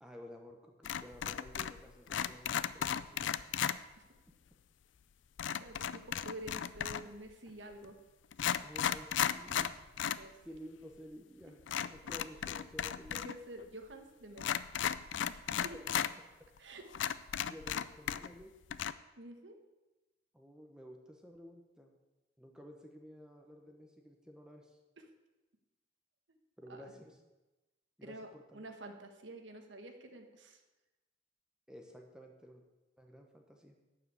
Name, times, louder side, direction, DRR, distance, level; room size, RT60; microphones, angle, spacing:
voice 1, 0.0-3.5 8.6-9.8 10.4-13.3 17.4-18.5 20.3-21.9 22.4-24.8 26.6-27.2 28.0-28.6 31.7-32.6 33.0-33.7, equal, 5° right, 2 dB, 1.0 m, -53 dB
sound 1, 0.8-1.8 2.1-3.8 5.4-7.1 7.8-7.9 8.3-10.2 10.5-10.6 11.7-13.3 13.6-13.7 14.4-16.1 16.6-16.7 16.9-18.4 18.7-18.9, left 9 dB, 80° left, 0.4 m, -35 dB
voice 2, 3.7-4.0 5.6-8.0 10.2-10.4 11.7-11.8 13.1-14.6 15.3-15.8 16.6-16.8 19.2-19.6 25.0-25.1 26.7-26.9 28.0-30.6, right 1 dB, 80° right, 5 dB, 1.4 m, -49 dB
11.5 x 4.9 x 8.3 m, 1.1 s
head